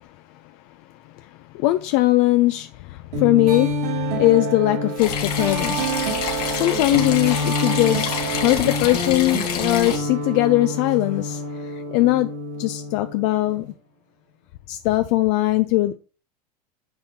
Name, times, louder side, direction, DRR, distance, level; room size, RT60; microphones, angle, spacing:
voice 1, 1.5-3.8 4.2-6.0 6.5-12.3 12.6-13.7 14.7-16.0, left 17 dB, 55° left, 0.5 m, -20 dB
sound 1, 3.1-13.7, equal, 85° right, 3.5 m, -27 dB
sound 2, 5.0-10.0, left 7 dB, 80° left, 2.0 m, -28 dB
9.6 x 5.2 x 2.7 m
hypercardioid pair, 105°, 20 cm